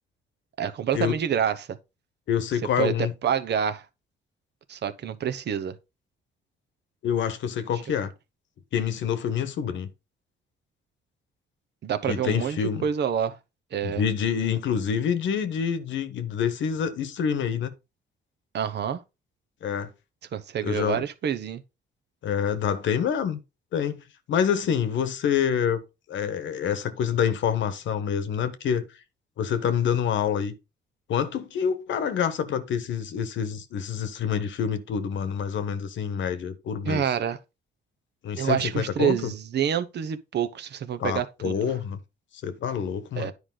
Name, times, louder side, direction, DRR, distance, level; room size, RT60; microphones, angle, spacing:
voice 1, 0.6-1.8 2.8-2.9 3.2-3.8 4.7-5.8 11.8-13.4 13.7-14.0 18.5-19.0 20.3-21.6 36.9-37.4 38.4-41.7 43.2-43.3, right 8 dB, 60° right, 0.9 m, -27 dB
voice 2, 2.3-3.1 7.0-8.1 8.7-9.9 12.1-12.9 13.8-17.7 19.6-19.9 20.6-21.0 22.2-23.4 23.7-25.8 26.1-28.9 29.4-30.5 31.1-37.0 38.2-39.3 41.0-42.0 42.4-43.3, left 8 dB, 70° left, 1.1 m, -27 dB
9.7 x 5.0 x 3.8 m
cardioid pair, 90°, 20 cm